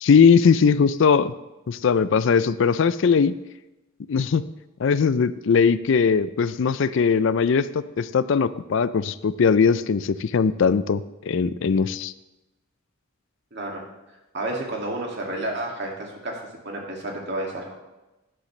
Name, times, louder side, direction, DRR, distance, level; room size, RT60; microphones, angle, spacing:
voice 1, 0.0-1.3 1.7-3.3 4.1-4.4 4.8-12.1, left 6 dB, 60° left, 15 dB, 0.4 m, -20 dB
voice 2, 13.5-13.8 14.3-17.7, right 1 dB, 55° right, -1 dB, 2.2 m, -31 dB
11.5 x 10.0 x 3.2 m, 1.0 s
head